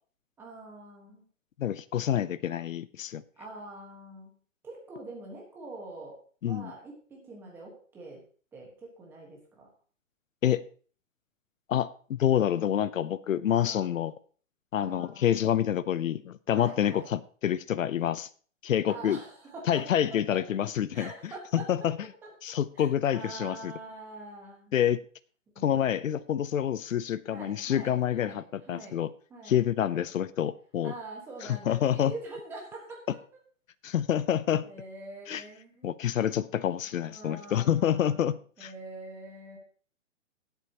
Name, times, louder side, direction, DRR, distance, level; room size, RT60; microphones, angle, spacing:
voice 1, 0.4-1.3 3.4-4.4 4.6-8.2 8.5-9.7 13.5-13.9 14.7-15.3 16.5-17.1 18.9-19.8 20.3-20.4 20.9-21.7 22.2-22.3 22.7-24.7 25.5-26.0 27.3-28.4 28.7-29.0 29.3-30.1 30.8-33.2 34.6-35.9 36.8-38.3 38.6-39.6, right 2 dB, 5° right, -1 dB, 1.4 m, -45 dB
voice 2, 1.6-3.2 6.4-6.7 10.4-10.6 11.7-14.1 14.7-18.3 18.6-19.2 19.7-21.1 21.7-21.9 22.4-23.7 24.7-25.0 25.6-29.1 29.5-30.9 31.7-32.1 33.8-34.6 35.3-35.4 35.8-38.7, left 10 dB, 80° left, 17 dB, 0.7 m, -27 dB
17.5 x 8.1 x 2.9 m, 0.43 s
hypercardioid pair, 175°, 39 cm